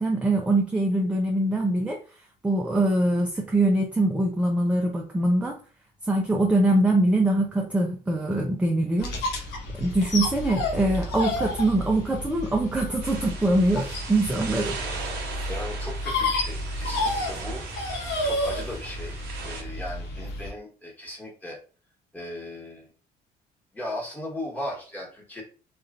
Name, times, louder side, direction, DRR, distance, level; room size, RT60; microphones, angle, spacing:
voice 1, 0.0-2.0 2.4-5.6 6.1-9.1 9.8-14.8 15.3-15.5, right 1 dB, 5° right, 0 dB, 0.5 m, -23 dB
sound 1, 9.0-20.5, left 2 dB, 85° left, 1.0 m, -31 dB
sound 2, 13.0-19.6, right 4 dB, 70° right, 0.8 m, -39 dB
voice 2, 15.5-17.6 18.2-19.2 19.4-21.6 22.1-22.9 23.7-25.4, left 1 dB, 10° left, -3 dB, 1.3 m, -37 dB
3.0 x 2.4 x 2.5 m, 0.38 s
cardioid pair, 110°, 17 cm